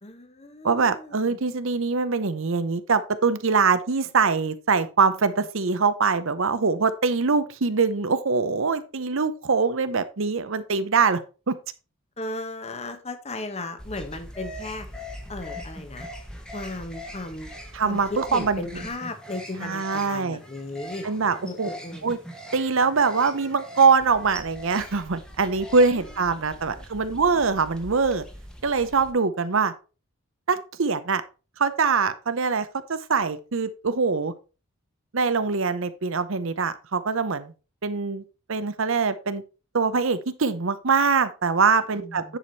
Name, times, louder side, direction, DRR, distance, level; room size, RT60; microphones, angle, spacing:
voice 1, 0.0-1.4 12.2-16.1 16.5-17.5 17.8-21.0 21.4-22.1 25.9-26.1 26.7-27.2 41.9-42.4, left 2 dB, 30° left, 7 dB, 1.2 m, -36 dB
voice 2, 0.6-11.2 11.5-11.6 17.7-18.6 19.6-20.4 21.0-21.7 22.0-22.2 22.5-28.2 28.6-29.7 30.5-31.2 31.6-34.3 35.1-37.5 37.8-38.2 38.5-39.4 39.7-42.4, right 5 dB, 60° right, 12 dB, 0.8 m, -23 dB
sound 1, 13.8-29.1, equal, 5° left, 1.2 m, -41 dB
10.0 x 5.0 x 4.1 m, 0.33 s
head